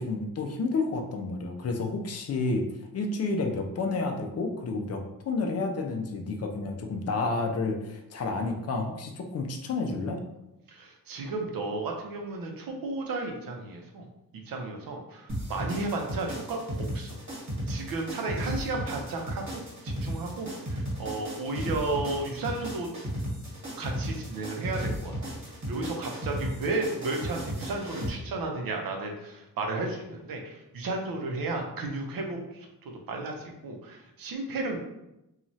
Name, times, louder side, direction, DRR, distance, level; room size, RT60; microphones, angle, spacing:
voice 1, 0.0-2.7 2.9-10.2, left 3 dB, 45° left, 3 dB, 0.4 m, -30 dB
voice 2, 10.7-14.1 14.5-17.2 17.7-22.9 23.8-34.8, right 2 dB, 75° right, 2 dB, 0.6 m, -33 dB
sound 1, 15.3-28.1, equal, 50° right, 1.2 m, -35 dB
3.0 x 2.3 x 2.6 m, 0.90 s
wide cardioid pair, 135°, 35 cm